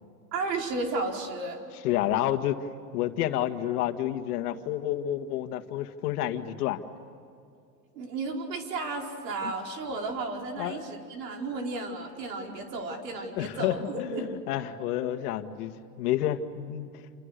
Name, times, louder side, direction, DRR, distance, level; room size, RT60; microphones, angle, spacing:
voice 1, 0.3-1.6 7.9-14.3, right 3 dB, 75° right, 2 dB, 5.1 m, -33 dB
voice 2, 1.8-2.7 2.9-6.8 10.6-10.9 13.4-16.9, left 12 dB, 65° left, 8 dB, 1.9 m, -29 dB
28.5 x 28.5 x 6.8 m, 2.5 s
hypercardioid pair, 125°, 49 cm